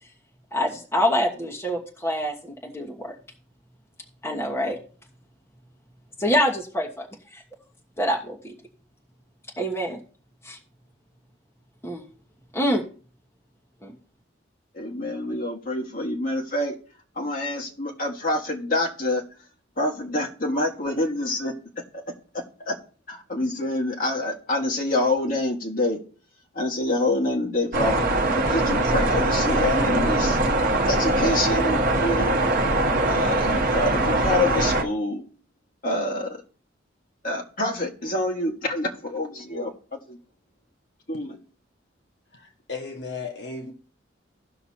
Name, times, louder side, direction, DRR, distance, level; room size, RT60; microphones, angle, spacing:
voice 1, 0.5-3.2 4.2-4.8 6.2-7.1 7.3-7.4 8.0-8.5 9.6-10.0 10.4-10.6 11.8-12.0 12.5-12.8 13.8-14.0, equal, 15° left, -1 dB, 1.2 m, -25 dB
voice 2, 14.8-16.7 17.2-19.2 19.8-21.5 21.9-22.0 22.3-22.8 23.1-26.0 26.6-28.1 28.4-30.4 30.9-32.4 33.1-35.2 35.8-36.4 37.2-40.2 41.1-41.4, left 1 dB, 45° left, 0 dB, 1.6 m, -27 dB
sound 1, 27.7-34.8, right 2 dB, 45° right, 1.0 m, -22 dB
voice 3, 42.3-43.7, left 4 dB, 60° left, 3 dB, 1.2 m, -35 dB
17.0 x 5.9 x 2.8 m, 0.41 s
head